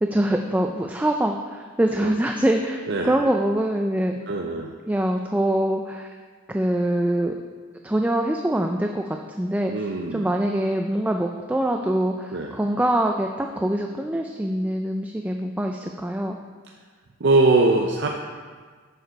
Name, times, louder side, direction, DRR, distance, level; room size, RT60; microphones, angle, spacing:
voice 1, 0.0-4.1 4.9-6.1 6.5-7.3 7.8-16.4, right 1 dB, 10° right, 3 dB, 0.4 m, -24 dB
voice 2, 4.3-4.7 9.7-10.3 12.3-12.5 17.2-18.1, right 2 dB, 60° right, 1 dB, 0.6 m, -21 dB
9.0 x 6.6 x 5.2 m, 1.6 s
head